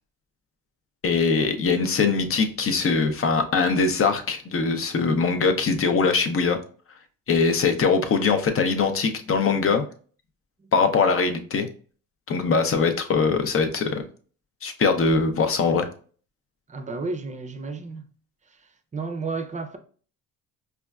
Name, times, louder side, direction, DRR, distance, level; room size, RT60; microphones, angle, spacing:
voice 1, 1.0-6.6 7.3-9.8 10.7-11.7 12.3-14.0 14.6-15.9, left 4 dB, 40° left, 0.7 m, -22 dB
voice 2, 16.7-18.0 18.9-19.8, right 4 dB, 20° right, 0.6 m, -31 dB
5.0 x 2.3 x 2.3 m
supercardioid pair, 70°, 34 cm